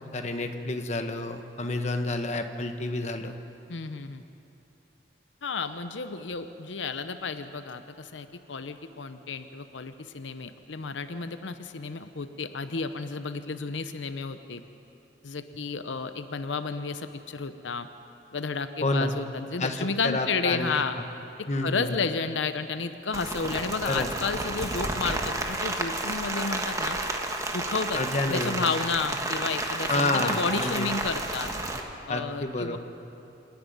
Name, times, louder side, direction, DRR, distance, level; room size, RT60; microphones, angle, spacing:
voice 1, 0.0-3.4 18.8-19.1 19.6-21.1 21.5-21.9 23.8-24.1 28.0-28.7 29.9-30.9 32.1-32.8, left 2 dB, 40° left, 6 dB, 1.2 m, -29 dB
voice 2, 3.7-4.2 5.4-14.6 15.2-17.9 18.3-21.0 21.4-27.0 27.5-28.0 28.3-31.5 32.1-32.8, left 4 dB, 85° left, 10 dB, 0.7 m, -32 dB
Rain, 23.1-31.8, right 2 dB, 20° right, 1.3 m, -31 dB
27.5 x 10.5 x 9.4 m, 2.9 s
head